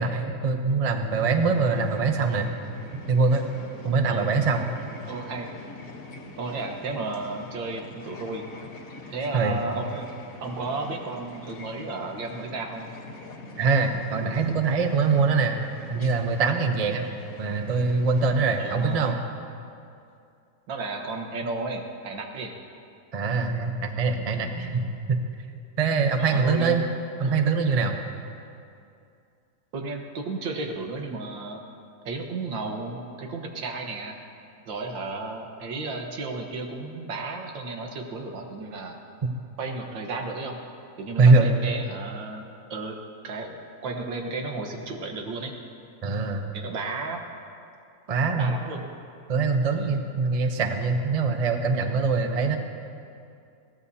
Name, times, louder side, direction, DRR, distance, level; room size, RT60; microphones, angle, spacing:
voice 1, 0.0-2.5 3.1-3.4 3.8-4.7 9.3-9.6 13.6-17.1 17.4-19.3 23.1-25.2 25.8-26.9 27.2-28.0 39.2-39.3 41.2-41.5 46.0-46.5 48.1-48.5 49.3-52.6, right 4 dB, 40° right, 5 dB, 0.5 m, -23 dB
sound 1, 1.1-19.1, left 3 dB, 50° left, 1.5 m, -44 dB
voice 2, 5.1-5.5 6.4-8.5 9.1-10.1 10.4-12.9 18.6-19.1 20.7-22.6 26.2-26.8 27.2-27.5 29.7-31.6 32.1-34.2 34.7-39.0 39.6-40.6 41.0-42.4 42.7-43.6 43.8-45.5 46.5-47.3 48.4-48.8 49.7-49.9, right 3 dB, 90° right, 3 dB, 2.0 m, -33 dB
21.5 x 16.0 x 2.8 m, 2.5 s
omnidirectional pair, 2.0 m